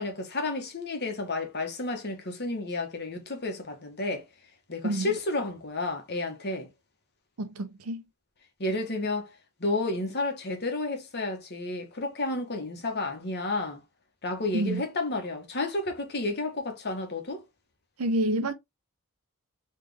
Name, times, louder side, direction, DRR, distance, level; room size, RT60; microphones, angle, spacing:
voice 1, 0.0-4.2 4.7-6.7 8.6-9.3 9.6-13.8 14.2-17.4, left 2 dB, 45° left, 1.3 m, -31 dB
voice 2, 4.8-5.1 7.4-8.0 14.5-14.8 18.0-18.5, right 1 dB, 75° right, 0.8 m, -28 dB
3.6 x 3.3 x 3.4 m
head